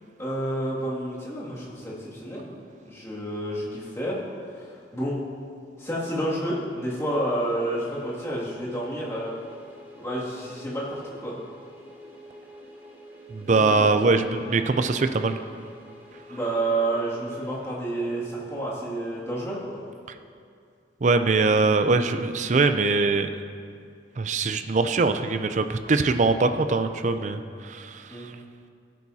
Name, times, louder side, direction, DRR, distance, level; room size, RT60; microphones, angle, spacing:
voice 1, 0.2-2.5 2.9-4.2 4.5-5.2 5.8-9.3 10.0-11.4 13.5-13.7 16.3-19.8 28.1-28.3, right 1 dB, 15° left, -8 dB, 2.3 m, -30 dB
sound 1, 6.6-18.4, right 1 dB, 10° right, 2.3 m, -48 dB
voice 2, 13.3-15.4 21.0-23.3 24.2-28.3, right 3 dB, 45° right, 9 dB, 0.4 m, -22 dB
16.0 x 9.3 x 2.8 m, 2.3 s
head